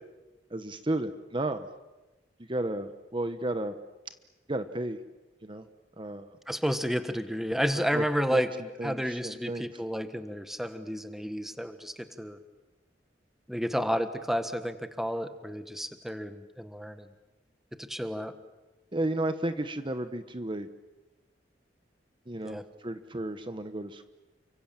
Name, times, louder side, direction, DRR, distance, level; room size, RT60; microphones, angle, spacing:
voice 1, 0.5-1.7 2.5-3.7 4.5-5.0 5.4-5.6 6.0-6.3 7.7-8.0 8.3-9.8 18.9-20.7 22.3-24.0, right 1 dB, 30° right, 10 dB, 1.2 m, -33 dB
voice 2, 6.5-8.5 8.8-12.4 13.5-17.0 17.9-18.3 22.4-22.6, equal, ahead, 9 dB, 1.4 m, -31 dB
29.5 x 25.0 x 7.6 m, 1.1 s
head